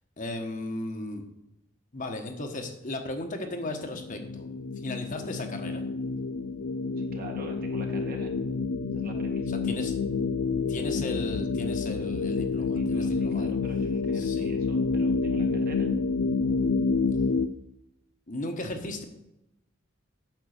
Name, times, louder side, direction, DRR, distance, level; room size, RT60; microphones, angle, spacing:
voice 1, 0.2-1.2 1.9-4.5 4.8-5.8 9.5-9.9 10.7-13.5 14.1-14.5 18.3-19.0, left 2 dB, 40° left, 4 dB, 1.3 m, -35 dB
sound 1, 3.6-17.5, left 4 dB, 65° left, 0.4 m, -28 dB
voice 2, 7.0-8.3 8.9-9.5 12.6-15.9, right 2 dB, 45° right, 2 dB, 1.9 m, -46 dB
9.1 x 6.5 x 6.6 m, 0.85 s
head